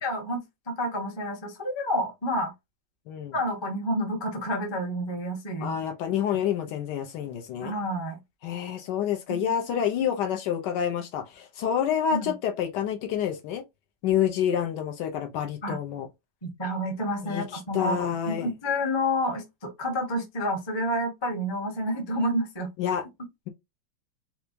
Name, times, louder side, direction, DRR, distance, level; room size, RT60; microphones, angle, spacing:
voice 1, 0.0-2.5 3.3-5.7 7.6-8.2 9.3-9.5 12.1-12.3 15.6-15.8 16.4-22.7, equal, 25° left, 0.5 m, -29 dB
voice 2, 5.6-7.7 8.4-13.6 14.0-16.1 17.2-18.5 22.8-23.0, left 9 dB, 70° left, 1.1 m, -28 dB
4.5 x 2.2 x 2.5 m
omnidirectional pair, 2.1 m